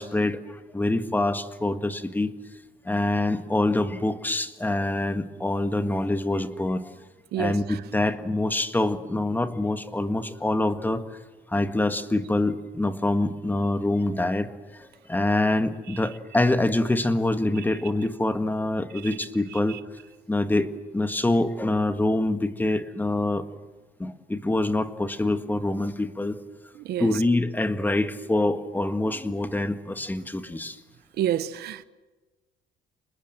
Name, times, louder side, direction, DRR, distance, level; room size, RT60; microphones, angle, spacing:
voice 1, 0.0-2.3 2.9-6.9 7.4-11.0 11.5-19.8 20.3-20.7 20.9-23.5 24.0-26.4 27.0-30.8, left 2 dB, 10° left, 1.7 m, -25 dB
voice 2, 7.3-7.8 15.9-16.1 17.5-17.6 18.9-19.8 26.7-27.2 31.2-31.8, right 11 dB, 70° right, 1.0 m, -31 dB
26.5 x 20.5 x 7.7 m
cardioid pair, 110°, 17 cm